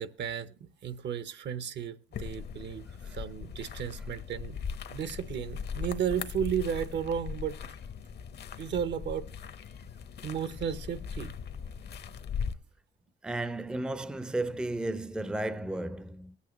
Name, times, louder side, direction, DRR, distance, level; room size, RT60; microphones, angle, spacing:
voice 1, 0.0-2.8 3.1-4.6 4.9-7.6 8.6-9.3 10.2-11.3, right 8 dB, 65° right, 0.8 m, -34 dB
sound 1, 2.1-12.5, left 6 dB, 55° left, 0.8 m, -39 dB
voice 2, 13.2-16.4, right 2 dB, 5° right, 0.5 m, -34 dB
24.0 x 8.4 x 3.0 m
cardioid pair, 90°, 20 cm